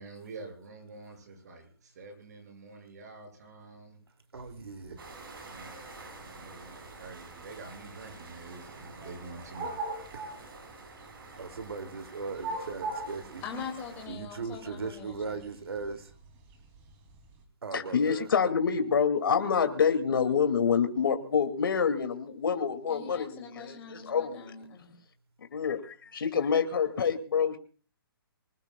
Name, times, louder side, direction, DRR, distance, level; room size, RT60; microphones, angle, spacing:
voice 1, 0.0-4.0 5.4-9.8, right 3 dB, 45° right, 6.8 m, -47 dB
sound 1, 4.3-17.4, right 2 dB, 20° right, 3.1 m, -44 dB
voice 2, 4.3-5.0 10.1-10.3 11.4-13.4 14.1-16.1 17.6-18.3, right 4 dB, 90° right, 2.9 m, -38 dB
sound 2, 5.0-14.1, right 3 dB, 70° right, 6.5 m, -49 dB
voice 3, 13.4-15.4 22.9-24.9, left 5 dB, 15° left, 3.2 m, -42 dB
voice 4, 17.7-24.5 25.5-27.6, left 6 dB, 65° left, 2.6 m, -27 dB
25.5 x 19.5 x 2.4 m
hypercardioid pair, 170°, 13 cm